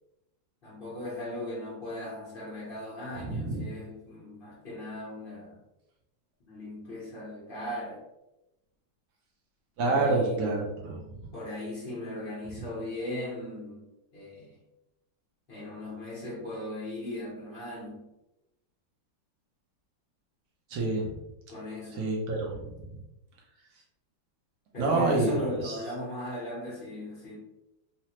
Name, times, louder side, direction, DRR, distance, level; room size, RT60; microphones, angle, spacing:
voice 1, 0.6-5.6 6.5-8.0 9.8-10.5 11.3-13.8 14.1-14.6 15.5-18.1 21.5-22.1 24.7-27.4, left 1 dB, 50° left, -6 dB, 0.6 m, -38 dB
voice 2, 3.2-3.6 9.8-11.3 20.7-21.2 22.0-23.0 24.8-25.4 25.6-25.8, right 3 dB, 70° right, -2 dB, 1.0 m, -28 dB
3.2 x 2.0 x 2.9 m, 0.93 s
omnidirectional pair, 2.0 m